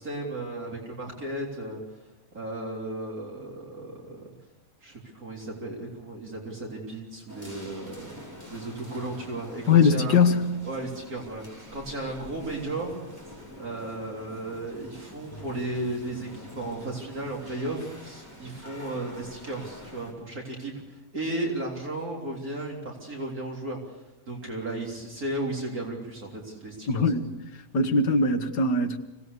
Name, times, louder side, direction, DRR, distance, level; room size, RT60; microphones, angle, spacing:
voice 1, 0.0-1.8 2.3-4.2 4.8-10.2 10.7-11.4 11.7-13.0 13.6-27.1, right 2 dB, 60° right, 4.0 m, -35 dB
sound 1, 7.3-20.1, left 1 dB, 10° right, 4.8 m, -45 dB
voice 2, 9.7-10.5 26.9-27.2 27.7-29.0, left 4 dB, 80° left, 1.9 m, -21 dB
25.0 x 18.0 x 6.8 m
omnidirectional pair, 1.7 m